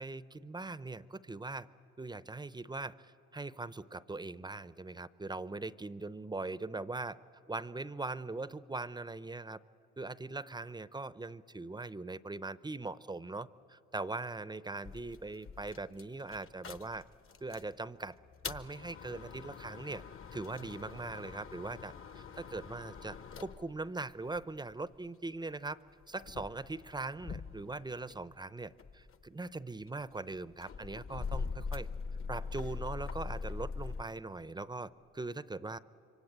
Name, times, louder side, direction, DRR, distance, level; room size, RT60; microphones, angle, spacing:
voice 1, 0.0-1.7 2.0-7.2 7.5-9.6 10.0-17.0 17.4-18.2 18.4-20.0 20.3-25.8 26.1-31.9 32.3-35.8, right 3 dB, 15° right, 17 dB, 0.6 m, -41 dB
sound 1, 14.8-17.7 18.2-25.0 25.7-28.3 28.6-34.0, left 5 dB, 45° left, 1.1 m, -43 dB
27.5 x 24.0 x 8.7 m, 2.7 s
cardioid pair, 90°, 30 cm